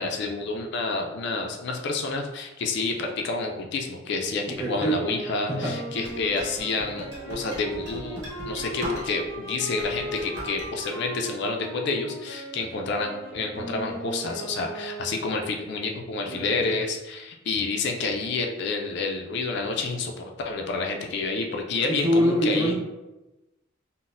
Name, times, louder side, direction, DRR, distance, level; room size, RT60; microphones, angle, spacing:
voice 1, 0.0-22.7, left 3 dB, 60° left, 3 dB, 0.3 m, -29 dB
voice 2, 4.6-4.9 5.6-5.7 16.3-16.5 22.0-22.7, equal, 15° right, -2 dB, 0.5 m, -23 dB
sound 1, 4.9-15.3, right 1 dB, 80° right, 0.7 m, -38 dB
sound 2, 6.0-9.4 9.7-10.7, left 1 dB, 60° right, 1.0 m, -37 dB
3.9 x 2.0 x 2.5 m, 1.0 s
head